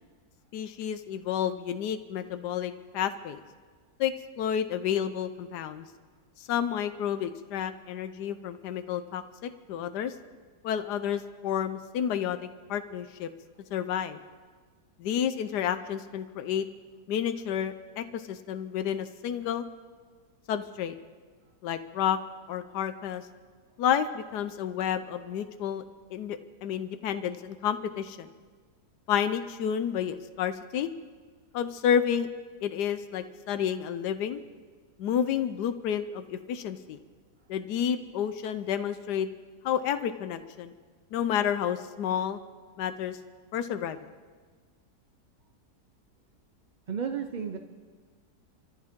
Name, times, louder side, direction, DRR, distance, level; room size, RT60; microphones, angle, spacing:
voice 1, 0.5-3.4 4.0-5.8 6.4-10.1 10.6-12.4 12.7-13.3 13.7-14.2 15.0-16.7 17.1-19.7 20.5-21.0 21.6-22.2 22.5-23.2 23.8-25.8 26.1-28.3 29.1-30.9 31.5-32.3 32.6-34.4 35.0-37.0 37.5-39.3 39.6-40.7 41.1-42.4 42.8-43.2 43.5-44.0, left 9 dB, 90° left, 10 dB, 1.3 m, -30 dB
voice 2, 46.9-47.6, right 7 dB, 50° right, 6 dB, 0.5 m, -32 dB
25.5 x 14.5 x 3.7 m, 1.5 s
omnidirectional pair, 1.7 m